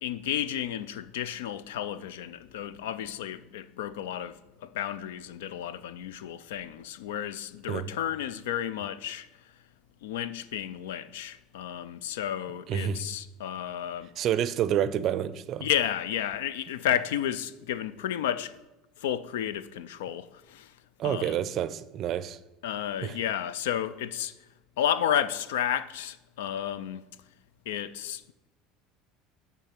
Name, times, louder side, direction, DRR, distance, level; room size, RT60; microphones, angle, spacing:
voice 1, 0.0-9.3 10.0-14.1 15.6-18.5 19.0-20.7 21.0-21.4 22.6-24.3 24.8-27.0 27.7-28.3, left 10 dB, 90° left, 0.4 m, -32 dB
voice 2, 12.7-13.0 14.2-15.7 21.0-22.4 23.0-23.2, right 10 dB, 45° right, 0.4 m, -28 dB
8.5 x 3.6 x 5.9 m
supercardioid pair, 110°, 0 cm